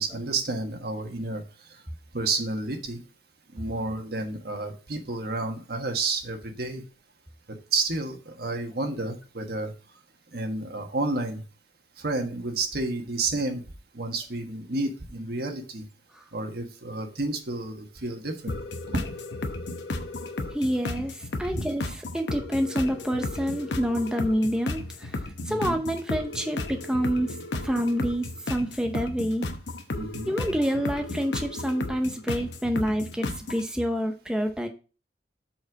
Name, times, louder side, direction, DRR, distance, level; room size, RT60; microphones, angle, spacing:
voice 1, 0.0-1.4 1.7-1.8 2.1-3.0 3.5-6.8 7.5-9.7 10.3-11.4 12.0-13.6 13.9-15.8 16.3-18.6 18.9-19.0 21.4-21.6 25.5-25.8 29.9-30.3, right 3 dB, 60° right, 4 dB, 1.4 m, -30 dB
sound 1, 18.5-33.7, left 2 dB, 85° left, 0.9 m, -34 dB
voice 2, 20.5-21.1 21.4-25.1 25.5-27.3 27.6-29.5 30.3-34.7, equal, 5° right, 4 dB, 0.7 m, -27 dB
7.7 x 4.4 x 4.7 m, 0.35 s
head